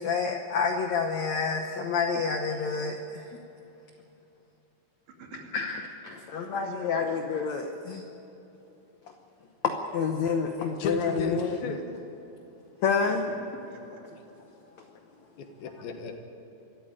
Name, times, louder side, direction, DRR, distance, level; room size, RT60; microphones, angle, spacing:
voice 1, 0.0-3.4 5.5-8.0 9.6-11.6 12.8-13.2, left 5 dB, 85° left, 5 dB, 1.5 m, -28 dB
voice 2, 5.2-5.6 6.3-7.2 13.0-14.0, right 3 dB, 85° right, 1 dB, 4.6 m, -47 dB
voice 3, 10.8-11.8 15.4-16.2, left 4 dB, 70° left, 5 dB, 3.2 m, -34 dB
23.5 x 13.5 x 9.9 m, 2.9 s
omnidirectional pair, 4.8 m